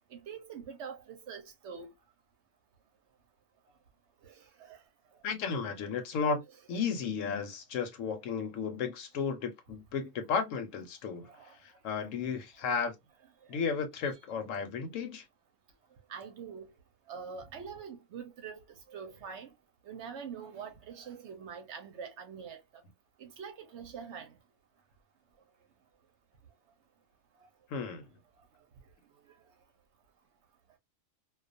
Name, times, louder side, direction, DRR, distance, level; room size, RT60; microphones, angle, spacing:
voice 1, 0.1-1.9 4.2-4.8 11.3-11.6 12.6-12.7 16.1-16.7 17.1-19.5 19.8-22.8 23.2-24.4, right 6 dB, 65° right, 0.8 m, -44 dB
voice 2, 5.2-6.4 6.7-11.3 11.6-12.9 13.5-15.2 27.7-28.1, left 6 dB, 70° left, 1.0 m, -34 dB
2.3 x 2.3 x 2.5 m
omnidirectional pair, 1.4 m